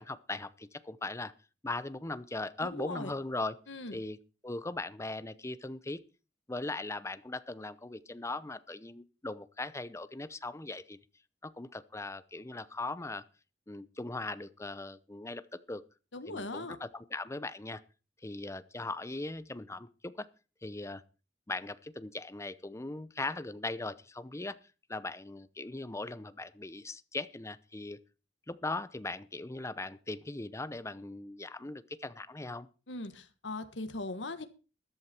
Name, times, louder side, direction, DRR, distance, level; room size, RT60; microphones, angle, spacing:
voice 1, 0.0-1.3 1.6-3.5 3.9-4.2 4.4-6.0 6.5-11.0 11.4-13.2 13.7-15.8 16.3-17.8 18.2-20.3 20.6-21.0 21.5-24.6 24.9-28.0 28.5-32.7, left 2 dB, 15° left, 15 dB, 0.7 m, -39 dB
voice 2, 2.6-3.1 3.7-4.0 16.1-16.8 32.9-34.5, left 2 dB, 85° left, 9 dB, 1.5 m, -39 dB
14.0 x 11.5 x 4.4 m, 0.35 s
head